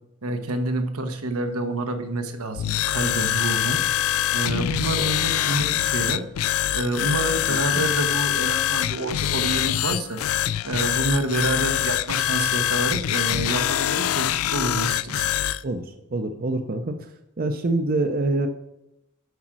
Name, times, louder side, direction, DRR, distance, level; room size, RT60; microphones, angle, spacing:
voice 1, 0.2-3.8 4.3-6.2 6.7-10.2 10.6-15.2, right 2 dB, 85° right, 7 dB, 1.1 m, -28 dB
sound 1, 2.6-15.6, left 12 dB, 75° left, 0.3 m, -24 dB
voice 2, 7.5-7.8 15.6-17.0 17.4-18.5, right 2 dB, 45° right, 8 dB, 0.6 m, -26 dB
8.1 x 5.0 x 6.1 m, 0.85 s
head